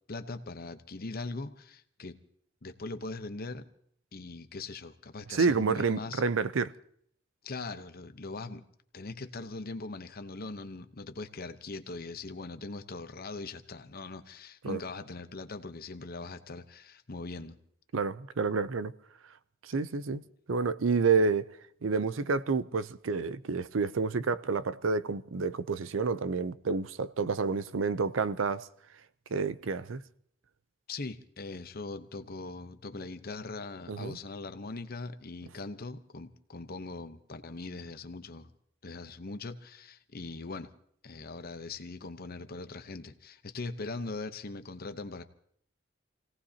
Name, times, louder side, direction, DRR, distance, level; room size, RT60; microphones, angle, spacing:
voice 1, 0.1-2.2 2.6-3.7 4.1-6.2 7.4-8.6 8.9-17.6 30.9-38.5 38.8-40.7 41.0-45.2, left 3 dB, 50° left, 0.9 m, -41 dB
voice 2, 5.3-6.7 14.6-14.8 17.9-18.9 19.6-20.2 20.5-21.5 21.8-28.7 29.3-30.0 33.9-34.2, right 4 dB, 85° right, 0.6 m, -29 dB
28.0 x 17.5 x 2.9 m
head